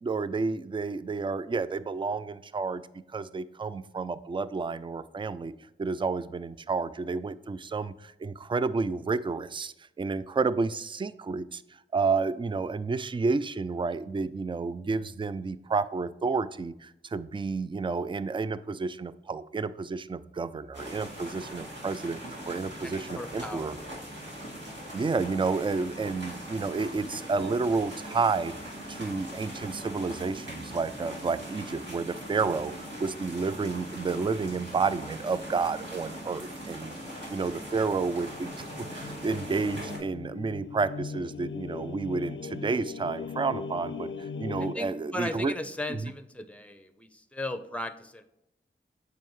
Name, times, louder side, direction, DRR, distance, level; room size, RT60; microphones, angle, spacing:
voice 1, 0.0-2.8 3.1-5.5 5.8-11.6 11.9-23.8 24.9-36.9 37.3-44.1 44.4-45.5 45.9-46.1, right 4 dB, 25° right, 15 dB, 0.3 m, -30 dB
sound 1, 20.7-40.0, equal, 60° right, 2.3 m, -41 dB
voice 2, 22.8-24.2 37.0-37.1 44.6-48.2, left 1 dB, 5° left, 10 dB, 0.7 m, -37 dB
sound 2, 38.2-44.7, left 5 dB, 70° left, 0.5 m, -39 dB
7.5 x 4.6 x 3.1 m, 0.85 s
cardioid pair, 45°, 21 cm